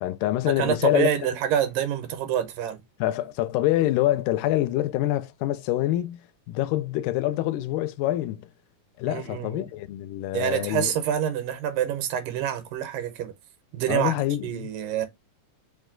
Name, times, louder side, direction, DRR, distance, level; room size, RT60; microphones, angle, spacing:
voice 1, 0.0-1.1 3.0-8.5 9.0-10.9 13.9-14.7, left 14 dB, 85° left, 2.1 m, -26 dB
voice 2, 0.6-2.8 9.1-9.7 10.3-13.3 13.7-14.1 14.4-15.1, right 10 dB, 85° right, 2.5 m, -27 dB
5.3 x 2.2 x 3.7 m
omnidirectional pair, 3.8 m